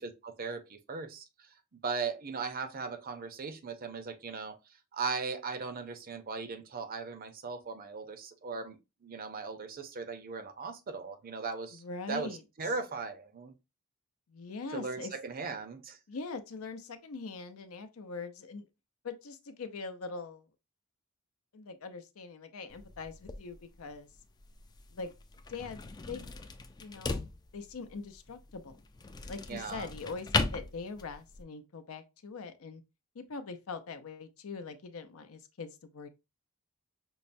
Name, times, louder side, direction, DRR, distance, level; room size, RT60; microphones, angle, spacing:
voice 1, 0.0-1.5 1.8-4.6 4.9-11.8 12.1-13.5 14.7-16.0 29.5-29.9, right 4 dB, 45° right, 0.6 m, -38 dB
voice 2, 11.7-12.4 14.3-15.1 16.1-18.6 19.0-20.5 21.5-24.1 24.9-25.1 25.5-26.3 26.8-28.8 29.2-32.8 33.1-36.1, left 4 dB, 80° left, 0.6 m, -42 dB
sound 1, 22.7-31.4, left 3 dB, 20° left, 0.3 m, -38 dB
5.4 x 2.1 x 2.5 m
head